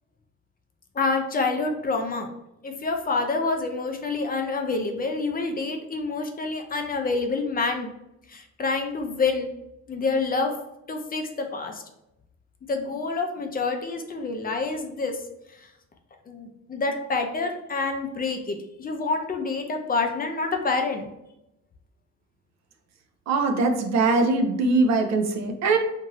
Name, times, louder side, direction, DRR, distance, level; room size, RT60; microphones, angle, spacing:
voice 1, 0.9-2.3 2.6-7.9 8.3-9.5 9.9-10.5 10.9-11.8 12.7-15.2 15.6-15.7 16.3-21.1, left 3 dB, 30° left, 4 dB, 0.4 m, -27 dB
voice 2, 23.3-25.8, right 3 dB, 65° right, 6 dB, 0.5 m, -22 dB
2.6 x 2.5 x 3.0 m, 0.87 s
cardioid pair, 90°, 30 cm